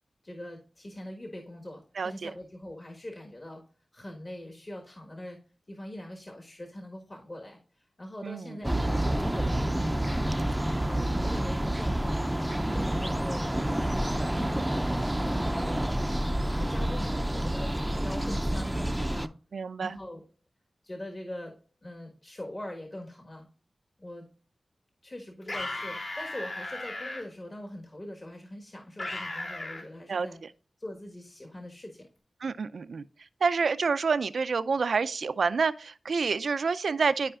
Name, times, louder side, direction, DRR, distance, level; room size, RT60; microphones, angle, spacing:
voice 1, 0.2-3.6 3.9-5.4 5.7-10.2 10.8-12.2 12.7-15.9 16.1-19.3 19.8-20.2 20.8-21.5 21.8-23.5 24.0-24.3 25.0-30.4 30.8-32.1, left 1 dB, 40° left, 1.5 m, -42 dB
voice 2, 2.0-2.3 8.2-8.5 19.5-20.0 30.1-30.3 32.4-33.0 33.4-37.3, right 5 dB, 85° right, 0.4 m, -28 dB
sound 1, 8.6-19.3, right 1 dB, 10° right, 0.5 m, -28 dB
sound 2, 25.4-27.2 29.0-29.8, left 2 dB, 70° left, 3.3 m, -36 dB
12.5 x 4.9 x 2.4 m
wide cardioid pair, 60°, 0 cm